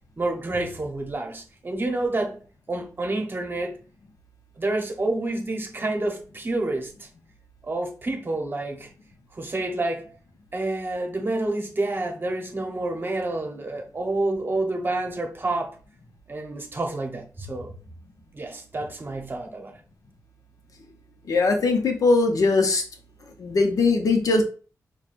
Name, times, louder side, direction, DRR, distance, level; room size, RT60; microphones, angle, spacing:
voice 1, 0.2-2.4 2.7-3.8 4.6-7.1 7.6-8.9 9.3-10.1 10.5-15.8 16.3-17.7 18.3-19.7, right 2 dB, 35° right, 0.9 m, -28 dB
voice 2, 21.3-22.8 23.4-24.4, left 3 dB, 75° left, 0.7 m, -20 dB
5.9 x 2.3 x 2.5 m
cardioid pair, 75°, 6 cm